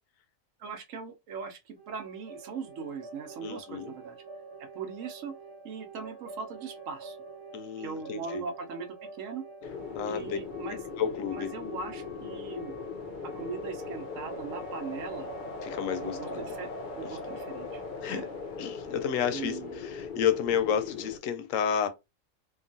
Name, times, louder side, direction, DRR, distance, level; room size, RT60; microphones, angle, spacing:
voice 1, 0.6-4.2 4.6-5.3 5.6-7.2 7.8-9.4 10.1-10.8 11.3-12.7 13.2-15.3 16.0-16.7 16.9-17.8 18.1-18.3 19.3-19.8, right 5 dB, 75° right, 1.1 m, -40 dB
sound 1, 1.8-19.5, right 4 dB, 25° right, 0.6 m, -47 dB
voice 2, 3.4-3.9 7.5-8.4 9.9-10.4 10.7-11.5 15.6-16.5 17.0-17.2 18.0-18.3 18.6-21.9, left 8 dB, 85° left, 1.0 m, -31 dB
sound 2, 9.6-21.2, left 4 dB, 60° left, 0.5 m, -39 dB
2.9 x 2.4 x 2.5 m
omnidirectional pair, 1.4 m